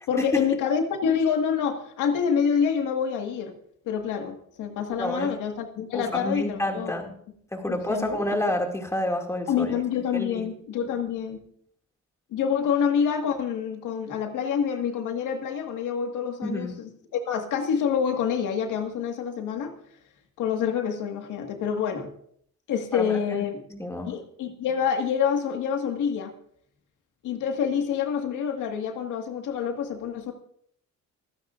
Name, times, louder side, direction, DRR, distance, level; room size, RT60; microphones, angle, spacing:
voice 1, 0.1-3.5 3.9-7.0 7.7-8.2 9.5-11.4 12.3-19.7 20.4-22.1 22.7-23.6 24.1-26.3 27.2-30.3, left 7 dB, 90° left, 4 dB, 1.9 m, -27 dB
voice 2, 5.0-5.3 5.9-7.1 7.5-9.7 10.1-10.5 16.4-16.8 22.9-23.2 23.7-24.2, left 1 dB, 10° left, 2 dB, 2.4 m, -28 dB
25.5 x 9.6 x 2.6 m, 0.63 s
cardioid pair, 90°, 30 cm